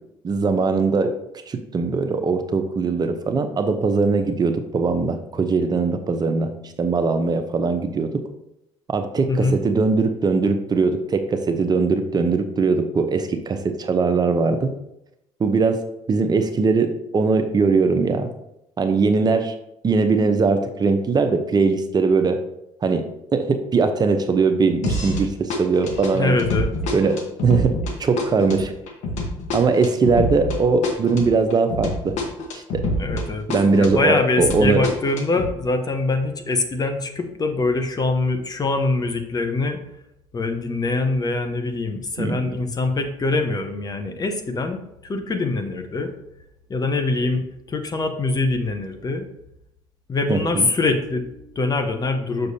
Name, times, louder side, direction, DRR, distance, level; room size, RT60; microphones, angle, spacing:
voice 1, 0.2-1.2 1.5-8.2 8.9-14.7 15.4-18.3 18.8-19.5 19.8-22.4 22.8-26.4 26.9-28.7 29.5-32.2 32.5-32.8 33.5-34.8 42.2-42.4 50.3-50.7, right 4 dB, 35° right, 7 dB, 0.7 m, -21 dB
voice 2, 9.3-9.6 26.1-26.7 33.0-33.5 33.7-39.8 40.3-46.1 46.7-49.3 50.1-52.5, left 3 dB, 30° left, 7 dB, 0.9 m, -23 dB
sound 1, 24.8-25.2 25.5-33.2 33.5-35.5, left 1 dB, 70° left, 1.3 m, -26 dB
6.6 x 6.2 x 2.8 m, 0.82 s
supercardioid pair, 85°, 12 cm